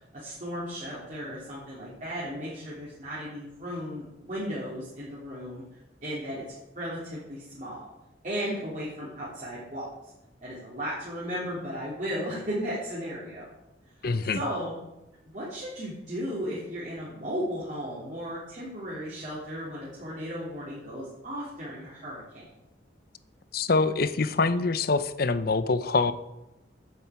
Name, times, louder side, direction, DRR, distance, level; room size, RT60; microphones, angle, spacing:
voice 1, 0.1-5.6 6.0-6.4 6.7-7.9 8.2-10.1 10.4-13.5 14.0-14.8 15.2-22.5, equal, 45° right, -7 dB, 3.5 m, -35 dB
voice 2, 14.0-14.4 23.5-26.1, left 3 dB, 55° left, 13 dB, 0.7 m, -25 dB
9.4 x 7.7 x 8.3 m, 0.95 s
head